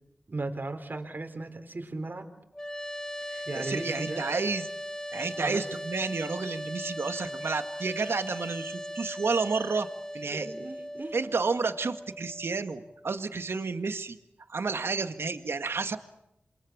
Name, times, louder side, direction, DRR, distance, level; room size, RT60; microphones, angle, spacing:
voice 1, 0.3-2.2 3.5-4.2 5.2-5.6 10.2-11.2, right 2 dB, 45° right, 6 dB, 4.1 m, -36 dB
sound 1, 2.5-13.6, equal, 15° left, 1.8 m, -39 dB
voice 2, 3.3-4.7 5.1-9.9 10.1-10.5 11.1-14.2 14.5-16.0, right 4 dB, 70° right, 8 dB, 1.9 m, -31 dB
28.0 x 23.0 x 8.7 m, 0.83 s
cardioid pair, 55°, 4 cm